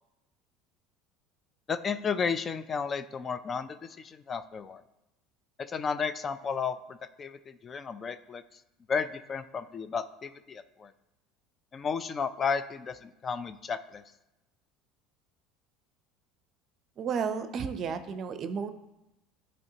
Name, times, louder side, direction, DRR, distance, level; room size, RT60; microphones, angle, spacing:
voice 1, 1.7-4.8 5.7-8.4 8.9-10.9 11.7-14.0, left 6 dB, 30° left, 11 dB, 0.4 m, -33 dB
voice 2, 17.0-18.7, right 6 dB, 45° right, 10 dB, 0.6 m, -32 dB
12.0 x 4.3 x 2.8 m, 0.94 s
supercardioid pair, 110°, 0 cm